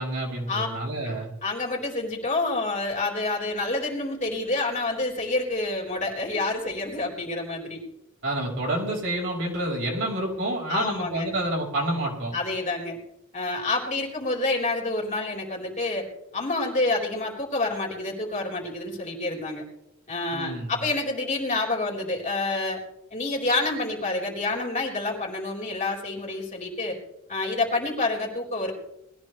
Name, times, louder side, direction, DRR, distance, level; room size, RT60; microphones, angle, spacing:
voice 1, 0.0-1.3 8.2-12.4 20.3-20.8, right 1 dB, 60° right, -1 dB, 5.3 m, -28 dB
voice 2, 1.4-7.8 10.7-11.3 12.3-13.0 13.3-16.1 16.3-19.6 20.1-22.8 23.1-27.0 27.3-28.7, left 2 dB, 35° left, -2 dB, 4.1 m, -28 dB
21.0 x 15.0 x 3.4 m, 0.80 s
head